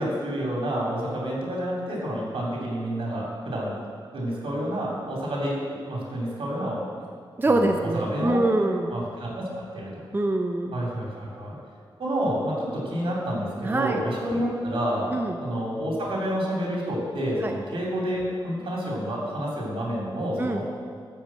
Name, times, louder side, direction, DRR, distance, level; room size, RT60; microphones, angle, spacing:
voice 1, 0.0-3.7 4.1-5.6 5.9-6.8 7.4-8.4 8.9-10.0 10.7-11.5 12.0-15.1 15.4-20.6, equal, 85° right, -3 dB, 3.1 m, -29 dB
voice 2, 7.4-8.9 10.1-10.7 13.6-14.0 15.1-15.4 17.4-17.5 20.4-20.6, right 2 dB, 25° right, 3 dB, 0.6 m, -24 dB
12.5 x 5.3 x 7.5 m, 2.1 s
wide cardioid pair, 135°, 9 cm